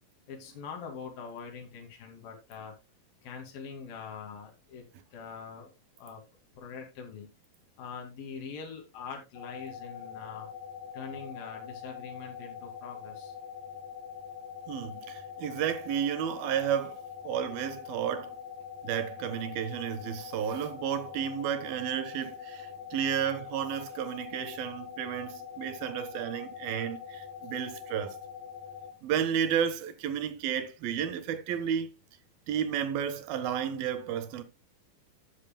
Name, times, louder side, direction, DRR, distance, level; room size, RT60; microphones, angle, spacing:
voice 1, 0.3-2.7 3.2-4.9 5.1-5.7 6.0-6.2 6.6-7.3 7.8-10.5 10.9-13.3, left 6 dB, 75° left, 4.1 m, -43 dB
sound 1, 9.4-28.9, left 7 dB, 55° left, 2.8 m, -44 dB
voice 2, 14.7-17.0 17.2-18.3 18.8-28.2 29.0-31.9 32.5-34.4, right 9 dB, 80° right, 3.1 m, -32 dB
13.0 x 10.0 x 2.3 m
omnidirectional pair, 4.2 m